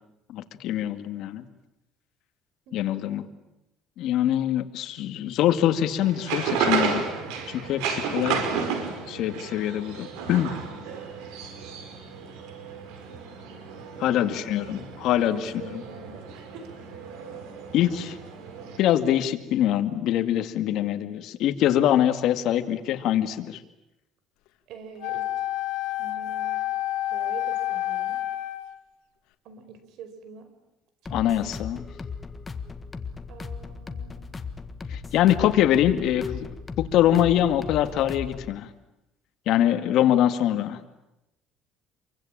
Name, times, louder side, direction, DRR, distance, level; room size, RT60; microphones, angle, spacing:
voice 1, 0.3-1.4 2.7-3.3 4.0-7.0 7.5-8.4 9.1-10.5 14.0-15.8 17.7-18.2 18.8-23.6 31.1-31.8 34.9-36.5 36.8-38.7 39.5-40.8, left 11 dB, 65° left, 9 dB, 2.1 m, -24 dB
sound 1, 6.0-18.8, right 6 dB, 90° right, 5.2 m, -32 dB
voice 2, 10.5-10.9 14.1-16.7 24.7-25.3 26.0-26.6 27.1-28.2 29.4-30.5 31.0-31.4 33.3-34.3 35.1-35.9, right 6 dB, 65° right, 10 dB, 5.0 m, -45 dB
Wind instrument woodwind instrument, 25.0-28.8, left 14 dB, 80° left, 2.2 m, -29 dB
sound 2, 31.1-38.6, left 5 dB, 20° left, 1.6 m, -37 dB
27.5 x 24.0 x 8.9 m, 0.91 s
cardioid pair, 140°, 0 cm